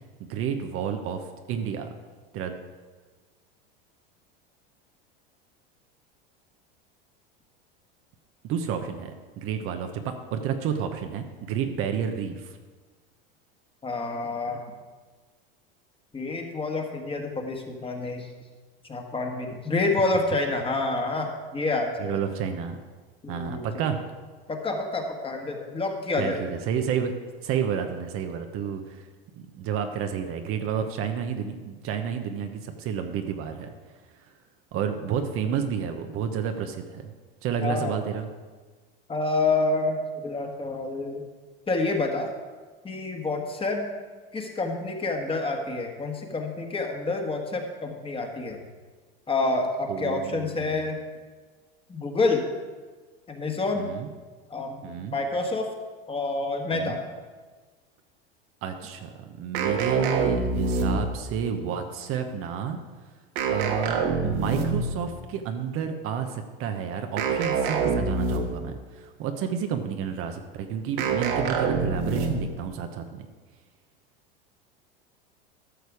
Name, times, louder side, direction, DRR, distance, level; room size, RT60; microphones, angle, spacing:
voice 1, 0.2-1.2 1.5-1.9 2.3-2.6 8.4-10.0 10.3-12.6 22.0-22.8 23.3-24.0 26.2-27.1 27.4-29.0 29.3-33.7 34.7-37.1 37.4-38.3 49.9-50.9 53.8-54.1 54.8-55.2 56.7-57.0 58.6-62.8 63.5-73.3, right 7 dB, 50° right, 6 dB, 1.0 m, -30 dB
voice 2, 13.8-14.6 16.1-18.3 18.9-22.2 23.2-23.8 24.5-26.4 37.6-37.9 39.1-41.2 41.7-42.3 42.8-43.8 44.3-48.6 49.3-51.0 51.9-52.4 53.3-53.8 54.5-55.7 56.1-57.0, left 3 dB, 20° left, 2 dB, 1.6 m, -28 dB
sound 1, 59.5-61.3 63.4-65.0 67.2-68.7 71.0-72.6, right 4 dB, 65° right, 1.6 m, -26 dB
13.0 x 6.7 x 4.8 m, 1.4 s
hypercardioid pair, 100°, 29 cm